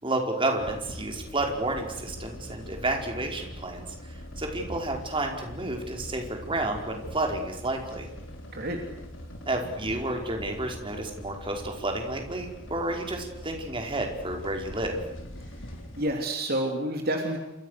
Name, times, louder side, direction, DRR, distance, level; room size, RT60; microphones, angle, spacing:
voice 1, 0.0-8.1 9.5-15.0, right 2 dB, 25° right, 2 dB, 4.9 m, -31 dB
sound 1, 0.6-16.1, equal, 85° left, 5.3 m, -42 dB
voice 2, 15.9-17.4, right 1 dB, 50° right, 3 dB, 3.2 m, -28 dB
29.5 x 26.5 x 6.7 m, 0.86 s
head